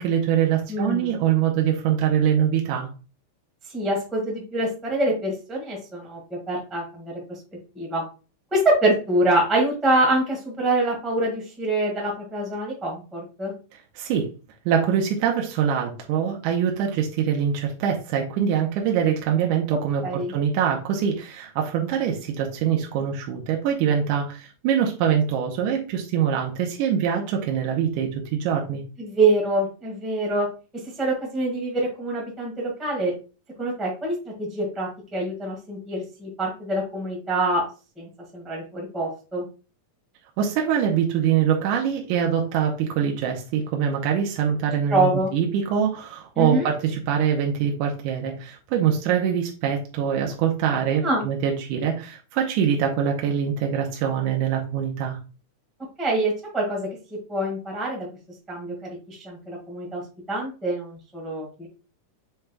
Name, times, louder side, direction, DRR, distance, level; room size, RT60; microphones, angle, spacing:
voice 1, 0.0-2.9 14.0-14.3 14.7-20.0 20.3-28.8 40.4-55.2, right 8 dB, 80° right, 1 dB, 2.1 m, -24 dB
voice 2, 0.7-1.2 3.7-6.2 6.5-7.1 7.7-8.0 8.5-13.5 20.0-20.3 29.0-30.5 31.0-33.1 33.6-37.6 38.0-39.4 44.9-45.3 46.4-46.7 51.0-51.3 56.0-58.1 58.5-60.0 60.3-61.7, right 2 dB, ahead, -2 dB, 0.6 m, -25 dB
7.1 x 3.3 x 2.2 m, 0.34 s
omnidirectional pair, 3.7 m